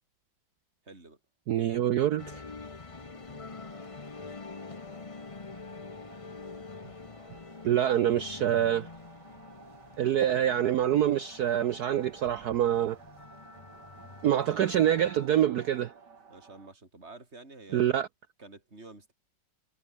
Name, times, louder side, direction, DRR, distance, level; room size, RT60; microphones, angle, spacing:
voice 1, 0.8-1.2 14.4-14.7 16.3-18.0 18.4-19.1, right 3 dB, 30° right, 5.6 m, -49 dB
voice 2, 1.5-2.4 7.6-8.9 10.0-13.0 14.2-15.9 17.7-18.1, right 11 dB, 70° right, 0.9 m, -26 dB
sound 1, 2.1-16.7, right 5 dB, 50° right, 3.0 m, -55 dB
sound 2, 2.2-15.3, left 4 dB, 55° left, 0.3 m, -46 dB
omnidirectional pair, 2.4 m